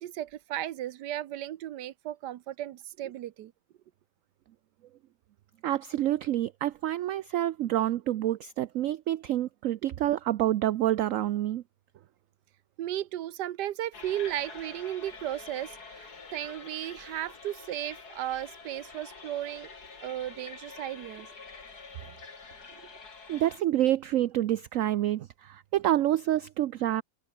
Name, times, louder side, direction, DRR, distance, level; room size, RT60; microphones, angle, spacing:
voice 1, 0.0-3.5 12.8-19.7 20.0-21.3 22.7-22.8, right 12 dB, 80° right, 1.4 m, -35 dB
voice 2, 5.6-11.6 23.3-27.0, right 13 dB, 65° right, 0.8 m, -27 dB
sound 1, 13.9-23.6, left 4 dB, 65° left, 3.4 m, -47 dB
omnidirectional pair, 1.8 m